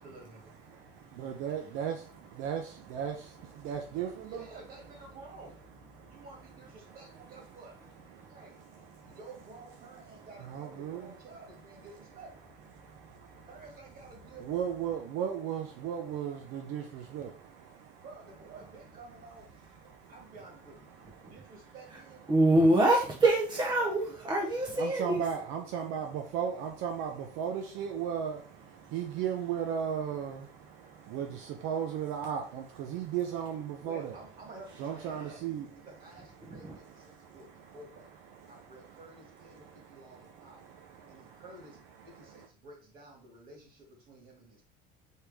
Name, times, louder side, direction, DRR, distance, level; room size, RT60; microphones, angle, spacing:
voice 1, 0.0-0.4 4.2-5.6 6.1-7.8 8.3-8.6 9.1-12.5 13.4-14.9 18.0-19.5 19.8-20.8 21.3-22.3 23.8-24.5 33.8-35.4 35.7-38.1 38.5-40.7 41.1-44.6, right 2 dB, 45° right, 0 dB, 2.1 m, -51 dB
voice 2, 0.7-4.5 5.9-6.3 6.8-9.2 9.8-11.9 12.7-13.9 14.4-18.1 19.5-20.3 20.9-21.7 22.2-22.3 24.7-34.3 34.7-35.9 36.4-41.4 42.0-42.5, right 8 dB, 70° right, 3 dB, 0.7 m, -38 dB
voice 3, 22.3-25.2 36.4-36.7, right 1 dB, 20° right, 0 dB, 0.9 m, -25 dB
4.5 x 3.3 x 3.5 m, 0.39 s
cardioid pair, 125°, 21 cm